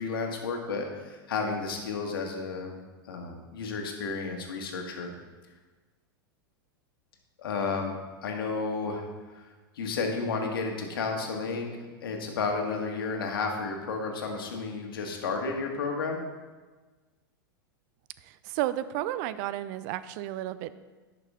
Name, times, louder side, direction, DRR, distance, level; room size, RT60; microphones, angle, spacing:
voice 1, 0.0-2.7 3.1-5.1 7.4-9.1 9.4-9.5 9.7-11.7 12.0-16.2, left 4 dB, 75° left, 2 dB, 1.7 m, -32 dB
voice 2, 18.2-20.7, right 13 dB, 50° right, 15 dB, 0.5 m, -32 dB
11.0 x 5.9 x 3.7 m, 1.3 s
hypercardioid pair, 105°, 12 cm